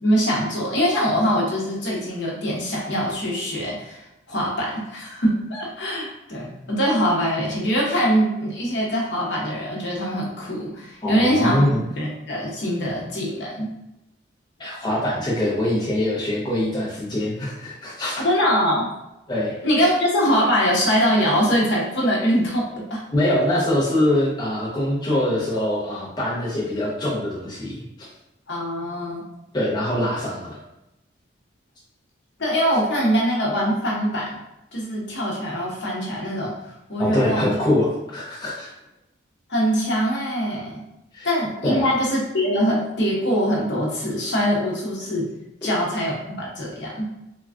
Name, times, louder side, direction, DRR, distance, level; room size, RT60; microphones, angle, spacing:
voice 1, 0.0-4.0 4.3-11.7 12.0-13.7 18.2-18.9 19.6-23.0 28.5-29.2 32.4-34.4 34.7-37.4 39.5-40.8 41.2-45.3 45.6-47.1, equal, 65° left, -4 dB, 0.8 m, -23 dB
voice 2, 11.0-11.8 14.6-18.3 19.3-19.5 23.1-27.8 29.5-30.6 37.0-38.7 41.1-41.3 41.6-42.0 45.6-45.7, left 1 dB, 20° left, -7 dB, 0.5 m, -23 dB
3.2 x 2.3 x 2.4 m, 0.88 s
head